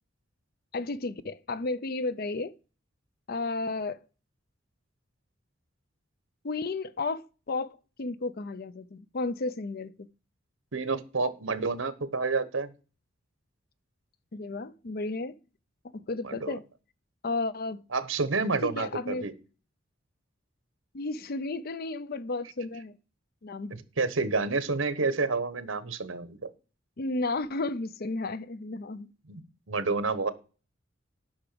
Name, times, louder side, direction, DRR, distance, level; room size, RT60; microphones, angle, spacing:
voice 1, 0.7-2.5 3.3-4.0 6.4-10.1 14.3-15.3 15.9-16.6 17.2-17.8 18.6-19.3 20.9-23.0 23.4-23.8 27.0-29.1, left 3 dB, 50° left, 0.6 m, -33 dB
voice 2, 10.7-12.7 16.2-16.6 17.9-19.3 23.7-26.4 29.3-29.4 29.7-30.3, right 4 dB, 85° right, 1.2 m, -29 dB
8.7 x 6.0 x 6.7 m
head